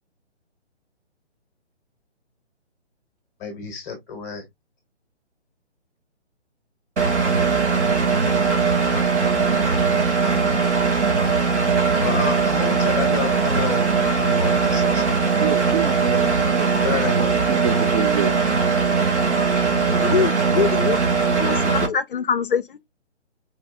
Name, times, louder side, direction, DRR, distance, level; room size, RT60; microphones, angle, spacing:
voice 1, 3.4-4.4 12.0-13.9 14.1-15.2 16.8-17.7, left 6 dB, 15° left, 0.7 m, -30 dB
Engine, 7.0-21.9, right 5 dB, 80° right, 1.6 m, -20 dB
voice 2, 15.4-18.4, right 8 dB, 35° right, 0.7 m, -28 dB
voice 3, 19.8-21.0 21.3-22.8, left 6 dB, 50° left, 0.4 m, -24 dB
4.1 x 2.5 x 2.4 m
hypercardioid pair, 150°, 34 cm